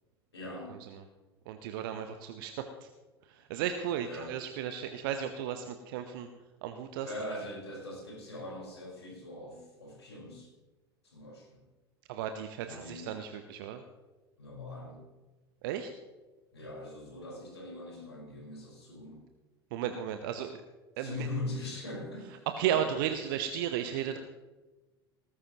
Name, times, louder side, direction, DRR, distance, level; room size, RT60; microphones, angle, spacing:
voice 1, 0.3-0.9 4.0-4.3 7.0-10.5 11.0-11.6 12.6-13.1 14.4-15.0 16.5-19.2 21.0-23.0, left 2 dB, 80° left, -1 dB, 4.6 m, -42 dB
voice 2, 1.5-2.9 3.2-6.3 6.6-7.1 12.1-13.8 15.6-15.9 19.7-20.6 21.0-21.3 22.6-24.2, right 9 dB, 55° right, 8 dB, 1.0 m, -34 dB
18.5 x 14.5 x 3.0 m, 1.2 s
figure-of-eight pair, 80°, 14 cm